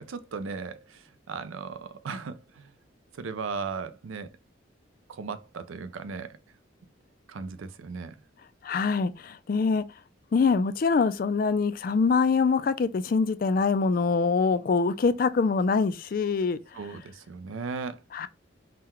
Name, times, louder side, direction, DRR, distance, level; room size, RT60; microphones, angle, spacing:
voice 1, 0.0-2.7 3.1-4.4 5.1-6.4 7.3-8.2 16.7-18.0, right 5 dB, 90° right, 0.4 m, -37 dB
voice 2, 8.6-9.8 10.3-16.6 18.1-18.3, left 4 dB, 45° left, 0.3 m, -24 dB
3.8 x 2.1 x 4.2 m
head